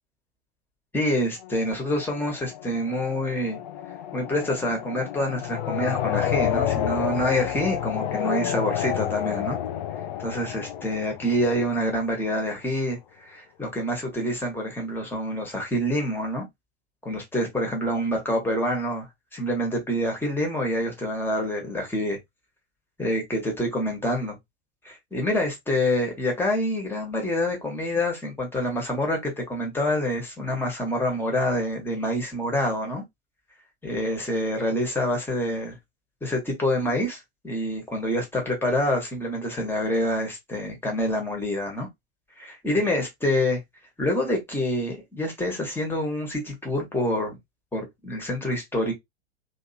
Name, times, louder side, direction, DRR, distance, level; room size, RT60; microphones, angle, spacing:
voice 1, 0.9-3.6 4.1-9.6 10.2-16.4 17.0-19.1 19.3-22.2 23.0-24.4 24.8-33.0 33.8-35.8 36.2-37.2 37.4-41.9 42.4-43.6 44.0-47.4 47.7-48.9, left 1 dB, 5° left, 1.5 m, -27 dB
sound 1, 1.4-12.2, left 10 dB, 45° left, 0.5 m, -30 dB
3.2 x 3.0 x 2.8 m
figure-of-eight pair, 90°, 34 cm